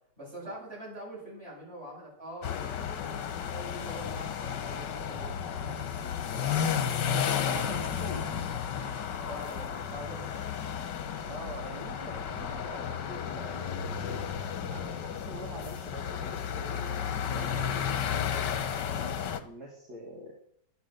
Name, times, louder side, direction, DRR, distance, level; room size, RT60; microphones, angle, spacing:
voice 1, 0.2-5.8 9.2-10.4, right 1 dB, 35° right, -5 dB, 7.4 m, -44 dB
sound 1, 2.4-19.4, left 8 dB, 85° left, 1.6 m, -33 dB
voice 2, 7.1-8.4 11.3-14.3 14.6-18.7 19.4-20.3, right 1 dB, 65° right, -2 dB, 2.6 m, -44 dB
11.0 x 11.0 x 6.6 m, 0.68 s
omnidirectional pair, 1.8 m